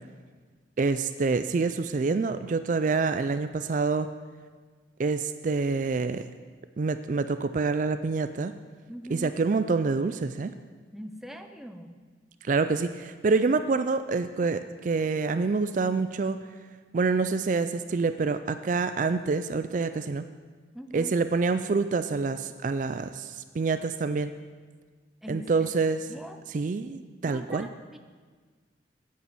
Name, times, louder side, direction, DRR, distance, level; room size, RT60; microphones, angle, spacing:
voice 1, 0.8-4.1 5.0-6.2 6.8-8.5 9.1-10.5 12.4-16.4 16.9-20.2 20.9-24.3 25.3-26.1 26.5-27.7, right 4 dB, 45° right, 11 dB, 0.4 m, -27 dB
voice 2, 8.9-9.4 10.9-12.0 20.7-21.2 25.2-25.5 26.1-26.4 27.3-28.0, equal, ahead, 6 dB, 0.6 m, -41 dB
9.4 x 8.7 x 7.2 m, 1.5 s
head